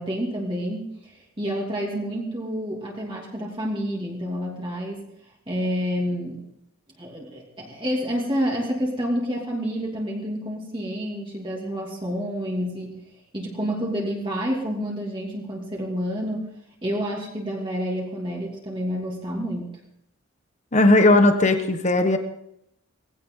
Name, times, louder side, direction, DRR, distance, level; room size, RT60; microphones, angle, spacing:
voice 1, 0.0-5.0 5.5-6.4 7.0-13.0 13.3-16.5 16.8-19.7, equal, 20° right, -3 dB, 2.7 m, -29 dB
voice 2, 20.7-22.2, left 2 dB, 30° left, 7 dB, 1.3 m, -17 dB
20.0 x 16.5 x 3.8 m, 0.78 s
head